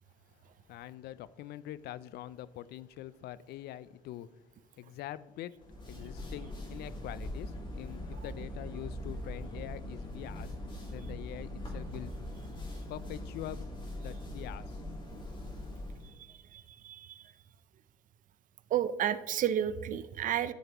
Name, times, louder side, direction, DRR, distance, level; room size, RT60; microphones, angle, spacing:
voice 1, 0.7-4.3 4.8-5.5 5.9-10.5 10.9-12.1 12.9-13.7 14.0-14.8, left 13 dB, 70° left, 18 dB, 0.4 m, -44 dB
sound 1, 5.6-16.1, left 1 dB, 30° left, 2.2 m, -41 dB
voice 2, 16.0-17.2 18.7-20.5, right 10 dB, 50° right, 15 dB, 0.5 m, -32 dB
12.0 x 6.7 x 3.0 m, 1.1 s
cardioid pair, 110°, 17 cm